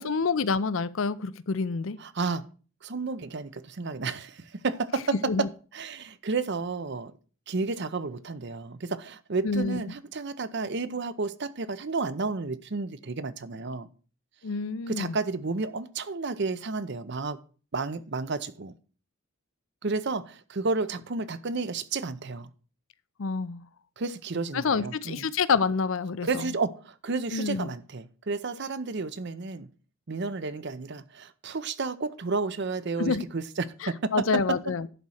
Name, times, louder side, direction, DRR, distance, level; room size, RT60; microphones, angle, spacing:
voice 1, 0.0-2.0 5.2-5.5 9.4-9.8 14.4-15.2 23.2-23.6 24.5-26.5 27.3-27.7 33.0-33.2 33.8-34.9, left 4 dB, 65° left, 0.5 m, -27 dB
voice 2, 2.0-2.4 2.8-5.1 5.7-7.1 7.5-13.9 14.9-17.4 17.7-18.7 19.8-22.5 24.0-25.2 26.2-29.7 30.1-33.9 34.3-34.4, right 4 dB, 55° right, 0.7 m, -31 dB
11.0 x 4.2 x 6.3 m
head